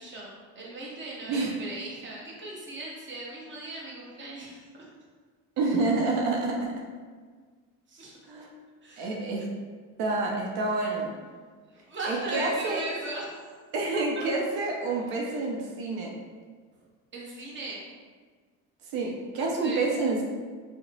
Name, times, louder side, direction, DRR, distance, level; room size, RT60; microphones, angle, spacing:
voice 1, 0.0-4.9 7.9-8.2 8.8-9.2 11.7-13.3 13.9-14.3 14.9-15.0 17.1-17.8 19.3-19.9, right 2 dB, 30° right, -4 dB, 0.9 m, -38 dB
voice 2, 5.6-6.7 8.3-8.5 9.0-9.5 10.0-11.1 12.1-12.8 13.7-16.1 18.9-20.2, right 3 dB, 85° right, -1 dB, 0.6 m, -28 dB
2.9 x 2.1 x 3.9 m, 1.5 s
cardioid pair, 100°, 36 cm